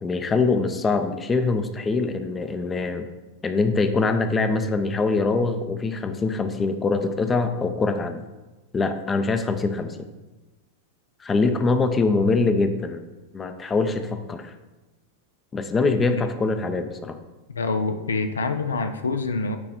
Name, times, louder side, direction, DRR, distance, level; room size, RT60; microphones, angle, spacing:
voice 1, 0.0-3.1 3.4-8.2 8.7-10.0 11.2-13.0 13.3-14.5 15.5-17.2, left 3 dB, 20° left, 8 dB, 0.5 m, -23 dB
voice 2, 17.5-19.6, left 3 dB, 70° left, 8 dB, 0.4 m, -26 dB
9.7 x 3.2 x 4.2 m, 1.1 s
figure-of-eight pair, 90°, 0 cm